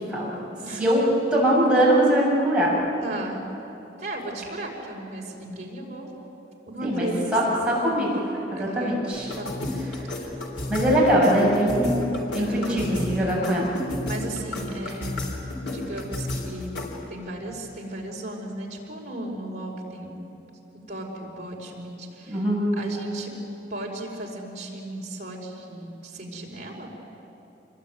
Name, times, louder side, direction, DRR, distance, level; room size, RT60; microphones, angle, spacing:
voice 1, 1.3-2.7 6.8-9.3 10.7-12.0 12.3-13.7 22.3-22.7, right 1 dB, 5° right, -6 dB, 7.7 m, -22 dB
voice 2, 3.0-3.5 4.0-6.1 6.7-7.3 8.5-9.0 9.4-9.8 12.3-12.9 14.0-15.2 15.7-16.7 17.1-20.3 20.9-22.4 22.7-23.3 23.7-26.9, right 1 dB, 45° right, -2 dB, 4.9 m, -35 dB
sound 1, 9.1-17.1, left 2 dB, 85° left, 4.0 m, -32 dB
26.5 x 21.5 x 9.4 m, 2.9 s
head